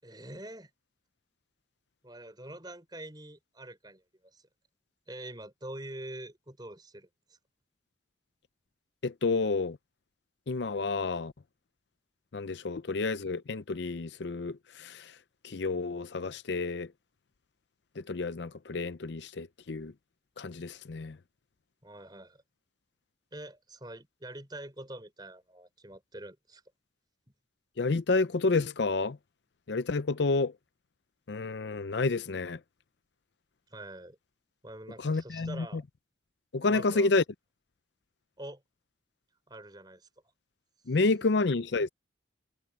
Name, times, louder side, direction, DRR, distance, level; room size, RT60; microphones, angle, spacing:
voice 1, 0.0-0.7 2.0-4.4 5.1-7.4 21.8-22.4 23.3-26.6 33.7-34.2 34.6-35.8 36.7-37.2 38.4-38.6 39.5-40.1, right 1 dB, 20° right, 5.2 m, -45 dB
voice 2, 9.0-9.8 10.5-11.3 12.3-15.0 15.4-16.9 18.1-19.9 20.4-21.2 27.8-29.2 29.7-30.5 31.3-32.6 35.0-35.7 36.5-37.2 40.9-41.9, left 3 dB, 65° left, 0.6 m, -29 dB
head